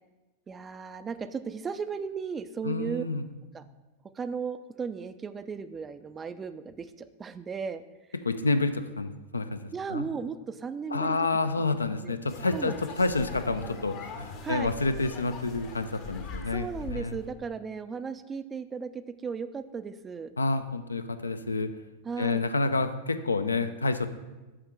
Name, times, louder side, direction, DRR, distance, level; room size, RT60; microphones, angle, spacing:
voice 1, 0.5-3.0 3.5-3.6 4.2-7.8 9.7-11.2 11.6-11.7 12.0-12.1 12.5-12.7 14.4-14.7 16.5-20.3 22.1-22.4, right 5 dB, 20° right, 12 dB, 0.3 m, -35 dB
voice 2, 2.6-3.3 8.2-9.6 9.9-10.1 10.9-17.2 20.4-21.7 22.2-24.1, left 3 dB, 80° left, 10 dB, 0.3 m, -29 dB
sound 1, 12.3-17.3, left 4 dB, 40° left, 0.7 m, -41 dB
7.7 x 3.6 x 4.5 m, 1.2 s
figure-of-eight pair, 90°, 0 cm